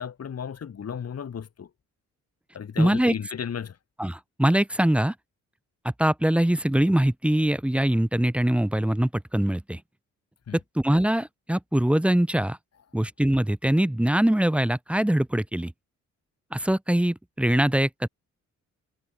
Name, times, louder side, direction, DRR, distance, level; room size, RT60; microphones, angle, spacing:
voice 1, 0.0-1.7 2.5-3.8 10.5-10.6, left 7 dB, 55° left, 7.7 m, -34 dB
voice 2, 2.8-3.1 4.0-5.1 6.0-9.8 10.8-12.6 12.9-15.7 16.5-18.1, right 1 dB, 5° right, 0.6 m, -23 dB
cardioid pair, 85°, 30 cm